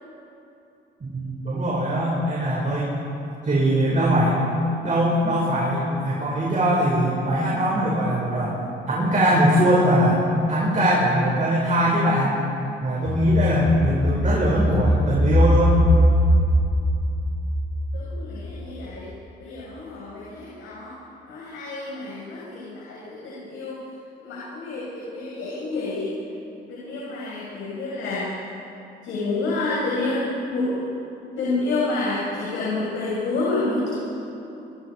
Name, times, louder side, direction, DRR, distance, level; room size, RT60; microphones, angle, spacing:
voice 1, 1.0-2.9 3.4-4.4 4.8-8.6 8.9-12.4 12.8-15.8, equal, 40° right, -5 dB, 5.7 m, -21 dB
sound 1, 13.0-18.7 19.1-19.2, equal, 35° left, 4.4 m, -21 dB
voice 2, 17.9-19.1 19.4-20.9 21.3-23.8 24.2-26.1 26.7-28.3 29.0-30.9 31.4-33.9, left 2 dB, 80° left, -7 dB, 5.9 m, -28 dB
26.0 x 23.5 x 5.0 m, 2.8 s
cardioid pair, 90°, 20 cm